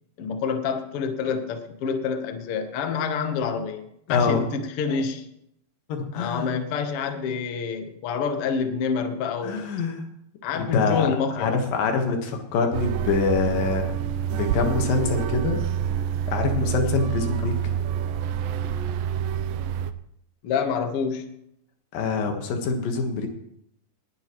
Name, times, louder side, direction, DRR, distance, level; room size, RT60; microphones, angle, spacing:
voice 1, 0.2-3.8 4.1-5.3 6.1-9.7 10.4-11.6 20.4-21.3, left 6 dB, 60° left, 6 dB, 1.6 m, -27 dB
voice 2, 4.1-4.4 5.9-6.5 9.4-10.0 10.5-13.9 14.3-15.6 16.3-17.7 21.9-23.3, left 4 dB, 80° left, 4 dB, 3.2 m, -25 dB
sound 1, 12.7-19.9, right 9 dB, 90° right, 2.3 m, -27 dB
19.5 x 10.0 x 3.1 m, 0.75 s
omnidirectional pair, 3.9 m